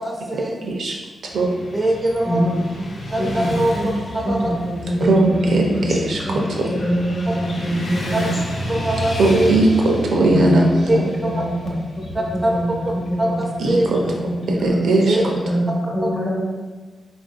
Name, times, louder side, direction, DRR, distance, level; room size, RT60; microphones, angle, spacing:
voice 1, 0.0-0.6 1.7-2.4 3.1-4.0 4.3-4.4 5.0-5.1 8.7-9.5 10.9-11.1 12.4-12.6 13.2-13.9 15.1-15.2, right 1 dB, 25° right, -1 dB, 0.4 m, -22 dB
voice 2, 0.6-0.9 1.3-1.5 5.0-6.2 6.6-6.7 9.2-10.7 10.9-11.1 13.6-14.0 14.5-15.2, right 2 dB, 75° right, -1 dB, 0.5 m, -18 dB
Motorcycle / Traffic noise roadway noise, 1.3-15.4, equal, 85° left, 0.6 m, -32 dB
voice 3, 2.2-2.9 3.2-3.9 4.2-5.8 6.2-6.4 6.7-8.3 10.3-14.8 15.1-16.6, equal, 50° left, -4 dB, 0.8 m, -24 dB
3.7 x 2.5 x 2.5 m, 1.3 s
cardioid pair, 95°, 0 cm